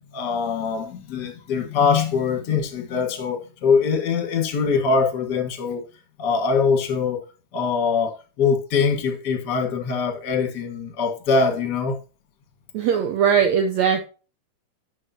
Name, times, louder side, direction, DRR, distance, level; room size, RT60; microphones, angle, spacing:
voice 1, 0.1-5.8 6.2-7.2 7.5-11.9, left 5 dB, 45° left, 1.4 m, -23 dB
voice 2, 12.7-14.0, right 7 dB, 75° right, 1.7 m, -20 dB
9.8 x 7.0 x 2.8 m
omnidirectional pair, 3.9 m